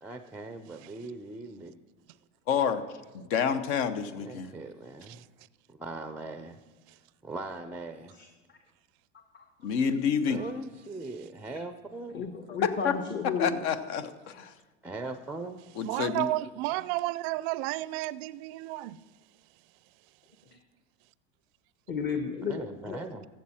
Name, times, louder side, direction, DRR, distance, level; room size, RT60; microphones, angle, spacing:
voice 1, 0.0-1.8 4.2-5.2 5.7-6.6 7.2-8.1 10.3-12.2 14.8-15.6 22.5-23.3, right 2 dB, 5° right, 0.4 m, -40 dB
voice 2, 2.5-2.8 3.3-4.5 9.6-10.4 12.5-12.9 13.4-14.5 15.8-16.3, left 7 dB, 60° left, 1.0 m, -28 dB
voice 3, 8.1-8.6 9.3-9.4 10.4-10.5 12.1-13.6 21.9-23.0, left 5 dB, 30° left, 1.1 m, -34 dB
voice 4, 15.8-19.0, right 17 dB, 60° right, 0.4 m, -32 dB
14.5 x 7.5 x 4.3 m
hypercardioid pair, 95°, 36 cm